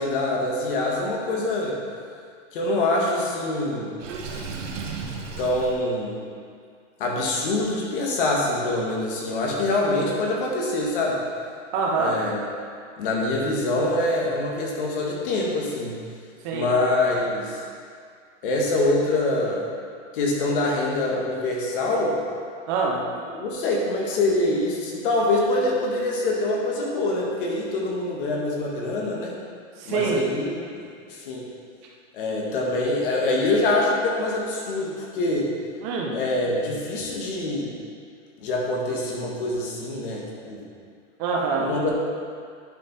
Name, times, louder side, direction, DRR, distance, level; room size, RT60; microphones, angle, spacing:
voice 1, 0.0-1.7 2.5-3.9 5.4-6.2 7.0-11.2 12.0-12.4 13.0-16.0 16.5-17.6 18.4-19.6 20.1-22.1 23.3-29.3 29.8-31.5 32.1-35.5 36.1-37.7 38.4-40.6 41.5-41.9, left 2 dB, 45° left, -2 dB, 1.7 m, -25 dB
Water / Sink (filling or washing), 4.0-5.8, right 4 dB, 90° right, 1.3 m, -34 dB
voice 2, 11.7-12.2 16.4-16.7 22.7-23.1 29.8-30.2 35.8-36.2 41.2-41.7, right 4 dB, 15° right, -1 dB, 0.4 m, -25 dB
10.5 x 5.3 x 4.2 m, 2.2 s
supercardioid pair, 175°, 37 cm